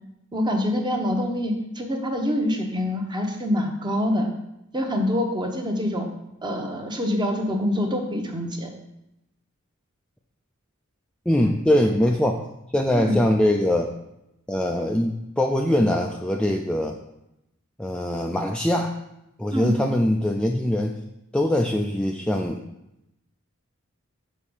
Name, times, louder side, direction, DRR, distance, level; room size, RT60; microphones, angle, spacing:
voice 1, 0.3-4.3 4.7-6.1 6.4-8.7 13.0-13.2 19.5-19.7, left 1 dB, 20° right, 3 dB, 0.9 m, -25 dB
voice 2, 11.3-12.4 12.7-13.9 14.5-17.0 17.8-19.0 19.4-21.0 21.3-22.6, left 1 dB, 5° left, 1 dB, 0.3 m, -22 dB
6.5 x 4.3 x 5.4 m, 0.86 s
head